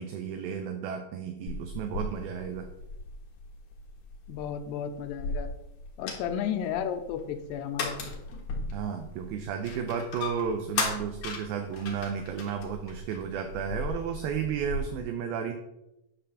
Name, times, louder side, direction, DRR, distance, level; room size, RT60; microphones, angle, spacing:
voice 1, 0.0-2.7 8.7-15.5, right 7 dB, 80° right, 5 dB, 2.4 m, -33 dB
sound 1, 1.5-14.8, left 3 dB, 60° left, 2.6 m, -37 dB
voice 2, 4.3-5.5 6.0-7.9, left 8 dB, 90° left, 7 dB, 2.8 m, -33 dB
9.9 x 3.7 x 6.7 m, 0.90 s
omnidirectional pair, 4.8 m